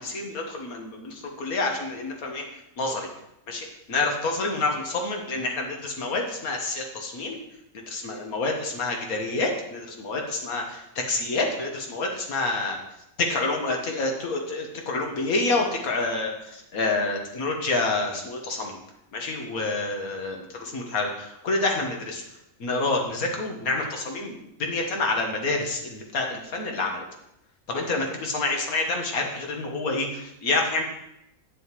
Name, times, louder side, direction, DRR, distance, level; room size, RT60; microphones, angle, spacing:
voice 1, 0.0-2.4 2.8-3.1 3.5-7.4 7.7-12.8 13.2-18.8 19.1-20.4 20.7-21.1 21.4-22.2 22.6-27.0 27.7-30.8, left 3 dB, 75° left, 2 dB, 1.7 m, -28 dB
9.3 x 7.0 x 3.1 m, 0.83 s
omnidirectional pair, 1.5 m